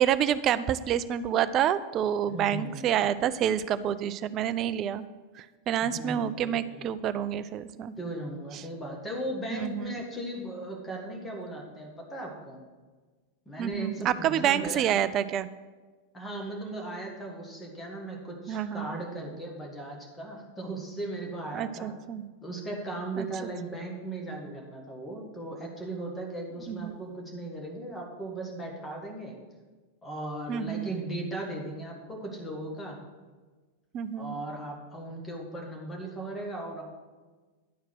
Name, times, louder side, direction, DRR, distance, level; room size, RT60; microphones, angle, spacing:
voice 1, 0.0-5.0 5.3-7.9 8.5-8.6 9.5-10.0 13.6-15.5 18.5-19.0 21.5-22.3 23.2-23.3 26.7-26.9 30.5-30.9 33.9-34.3, right 10 dB, 35° right, 14 dB, 0.3 m, -28 dB
voice 2, 2.3-2.8 5.8-6.8 8.0-12.6 13.5-14.9 16.1-21.9 22.4-29.4 30.0-33.0 34.2-36.8, right 1 dB, 10° left, -1 dB, 1.9 m, -37 dB
11.0 x 4.6 x 6.1 m, 1.4 s
figure-of-eight pair, 90°, 0 cm